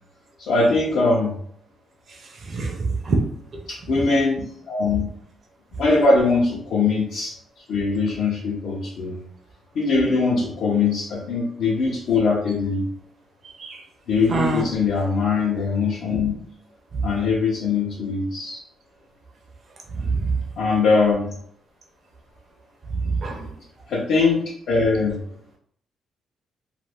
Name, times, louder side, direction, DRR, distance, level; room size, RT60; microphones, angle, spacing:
voice 1, 0.4-1.4 3.7-5.1 5.8-7.3 7.7-9.2 9.7-12.9 14.1-16.3 17.0-18.6 20.6-21.3 23.9-25.2, left 4 dB, 70° left, -5 dB, 0.7 m, -21 dB
voice 2, 2.5-3.2 13.6-13.8 14.3-14.6 16.9-17.0 19.9-20.4 23.0-23.5, right 4 dB, 40° right, 1 dB, 0.5 m, -24 dB
2.5 x 2.5 x 3.3 m, 0.64 s
cardioid pair, 135°, 0 cm